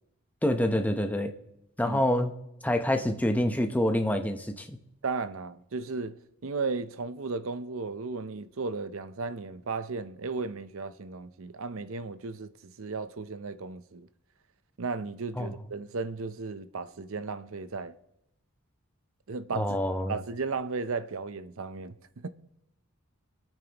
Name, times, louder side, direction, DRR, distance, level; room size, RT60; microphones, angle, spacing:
voice 1, 0.4-1.3 1.8-2.3 2.6-4.8 15.4-15.5 19.5-20.1, left 1 dB, 5° left, 0.8 m, -26 dB
voice 2, 5.0-6.2 6.4-14.1 14.8-17.9 19.3-19.8 20.1-22.0 22.2-22.3, right 4 dB, 70° right, 0.7 m, -35 dB
26.0 x 9.0 x 3.0 m
head